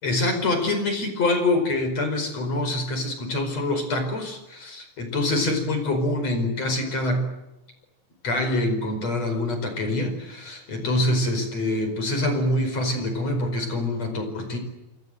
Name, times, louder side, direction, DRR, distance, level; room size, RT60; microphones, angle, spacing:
voice 1, 0.0-7.3 8.2-14.6, left 1 dB, 35° left, 7 dB, 5.7 m, -25 dB
27.5 x 26.5 x 7.8 m, 0.97 s
omnidirectional pair, 5.4 m